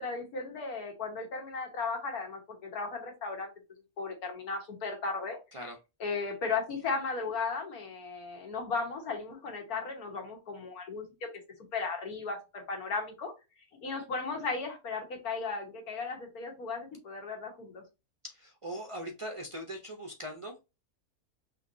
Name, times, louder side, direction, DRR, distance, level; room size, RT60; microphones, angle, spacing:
voice 1, 0.0-3.5 4.0-5.4 6.0-11.3 11.7-13.3 13.8-17.8, left 4 dB, 85° left, 3 dB, 1.8 m, -36 dB
voice 2, 18.2-20.6, equal, 45° right, 3 dB, 0.4 m, -40 dB
5.6 x 3.1 x 2.6 m, 0.27 s
omnidirectional pair, 1.5 m